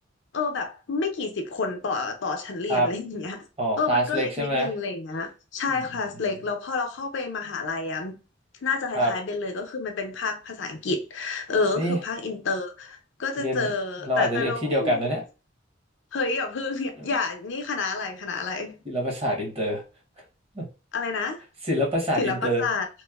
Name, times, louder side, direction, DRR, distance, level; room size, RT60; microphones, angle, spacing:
voice 1, 0.3-3.4 3.8-8.2 8.6-15.1 16.1-18.8 20.9-21.4 22.2-22.9, left 4 dB, 65° left, 0.5 m, -29 dB
voice 2, 3.6-4.7 8.9-9.1 11.8-12.0 13.4-13.7 14.0-15.2 18.9-19.8 20.6-20.7 21.7-22.6, equal, 30° right, 0.9 m, -25 dB
2.9 x 2.0 x 2.2 m
head